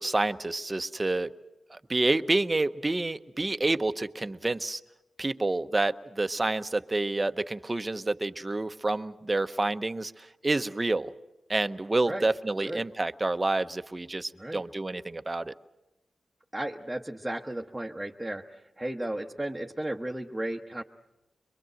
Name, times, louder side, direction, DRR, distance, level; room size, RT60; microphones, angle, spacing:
voice 1, 0.0-1.3 1.7-4.8 5.2-11.1 11.5-15.5, right 2 dB, 25° right, 11 dB, 0.8 m, -28 dB
voice 2, 14.3-14.6 16.5-20.8, right 1 dB, 10° right, 1 dB, 1.1 m, -34 dB
23.0 x 23.0 x 7.7 m, 0.98 s
cardioid pair, 60°, 0 cm